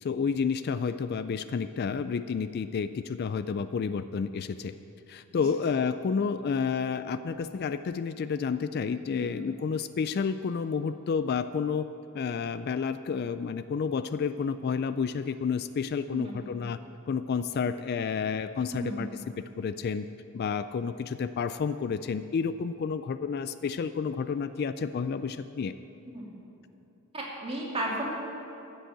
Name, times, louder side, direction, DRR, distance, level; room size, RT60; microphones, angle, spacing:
voice 1, 0.0-4.7 5.1-11.9 12.1-16.8 17.1-19.1 19.4-20.1 20.3-25.7, left 6 dB, 45° left, 12 dB, 0.3 m, -30 dB
voice 2, 16.1-16.5 18.7-19.2 26.1-26.4 27.1-28.2, right 1 dB, 25° right, -4 dB, 2.6 m, -34 dB
14.5 x 6.4 x 8.2 m, 2.9 s
head